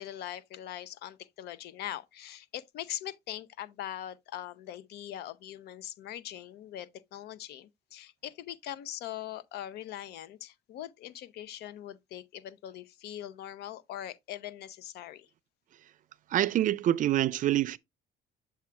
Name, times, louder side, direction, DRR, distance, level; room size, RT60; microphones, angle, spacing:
voice 1, 0.0-15.3, left 12 dB, 75° left, 0.6 m, -41 dB
voice 2, 16.3-17.8, right 12 dB, 50° right, 0.5 m, -26 dB
7.2 x 2.4 x 5.6 m
cardioid pair, 110°, 17 cm